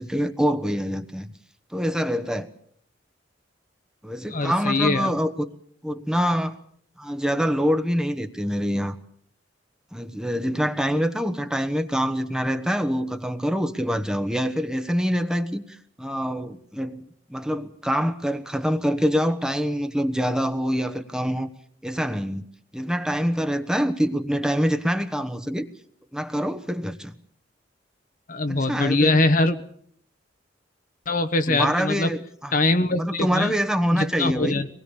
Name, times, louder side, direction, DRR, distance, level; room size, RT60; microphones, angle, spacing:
voice 1, 0.0-1.3 1.7-2.5 4.0-5.5 5.8-6.6 7.0-9.0 9.9-21.5 21.8-22.4 22.7-25.7 26.1-27.1 28.5-29.2 31.5-32.5 32.9-34.6, equal, 5° right, 6 dB, 1.1 m, -25 dB
voice 2, 4.3-5.1 28.3-29.6 31.1-32.1 32.5-33.6 33.9-34.7, left 2 dB, 50° left, 9 dB, 1.2 m, -22 dB
25.0 x 20.0 x 7.0 m, 0.63 s
head